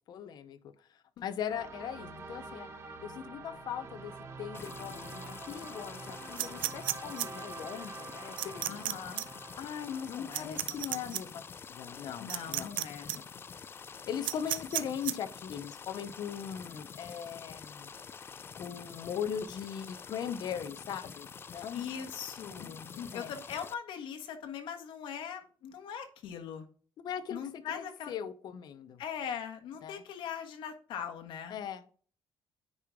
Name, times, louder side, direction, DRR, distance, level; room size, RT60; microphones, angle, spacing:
voice 1, 0.1-0.7 1.2-2.7 3.0-9.0 9.6-11.4 11.7-12.7 13.1-13.2 14.1-17.9 18.5-21.8 22.6-23.3 27.0-29.0 29.8-30.0 31.5-31.8, left 8 dB, 60° left, 10 dB, 0.7 m, -40 dB
sound 1, 1.5-10.8, right 3 dB, 35° right, 1.2 m, -46 dB
sound 2, 4.5-23.7, left 6 dB, 30° left, 0.4 m, -47 dB
sound 3, 6.4-7.3 8.4-8.9 9.2-9.3 10.3-11.2 12.3-12.8 13.1-13.2 14.2-15.1, right 13 dB, 90° right, 0.6 m, -32 dB
voice 2, 8.6-9.3 10.1-10.8 12.2-13.2 21.7-26.6 27.3-28.1 29.0-31.6, left 8 dB, 90° left, 5 dB, 1.4 m, -41 dB
9.6 x 4.8 x 3.6 m, 0.43 s
cardioid pair, 160°, 8 cm